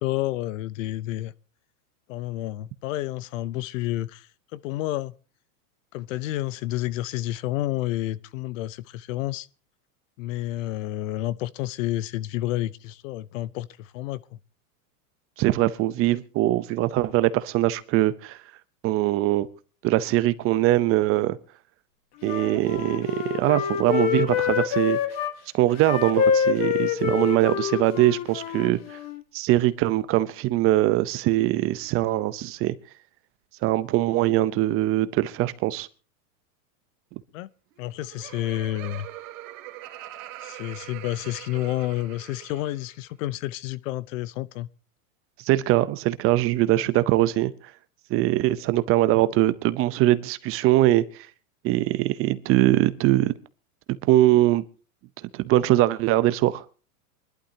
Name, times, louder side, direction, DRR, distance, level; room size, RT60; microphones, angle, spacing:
voice 1, 0.0-1.3 2.1-5.1 5.9-9.5 10.2-14.2 37.3-37.5 37.8-39.1 40.4-44.7, left 15 dB, 60° left, 0.8 m, -30 dB
voice 2, 15.4-18.4 18.8-19.5 19.8-21.4 22.2-25.0 25.5-29.0 29.3-32.7 33.6-35.9 45.4-47.5 48.1-51.0 51.6-53.3 54.1-54.6 55.3-56.6, right 15 dB, 30° right, 0.7 m, -22 dB
Wind instrument woodwind instrument, 22.2-25.3 25.8-29.2, left 8 dB, 35° left, 1.6 m, -26 dB
Laughter, 37.7-42.9, right 14 dB, 60° right, 2.4 m, -42 dB
25.0 x 11.5 x 2.8 m
supercardioid pair, 135°, 45 cm